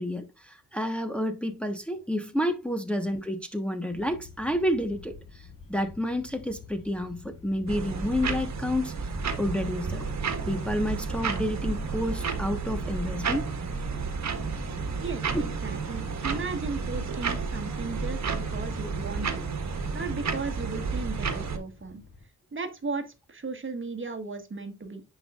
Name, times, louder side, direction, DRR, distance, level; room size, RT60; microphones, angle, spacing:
voice 1, 0.0-8.9 9.4-10.1 10.5-13.5 15.3-15.4, left 1 dB, 5° left, 1.2 m, -30 dB
sound 1, 3.9-22.3, left 4 dB, 65° left, 2.2 m, -50 dB
sound 2, 7.7-21.6, right 5 dB, 50° right, 1.5 m, -31 dB
voice 2, 15.0-19.4 19.9-22.0 22.5-25.0, right 3 dB, 35° right, 1.5 m, -36 dB
10.0 x 5.5 x 2.4 m
cardioid pair, 80°, 35 cm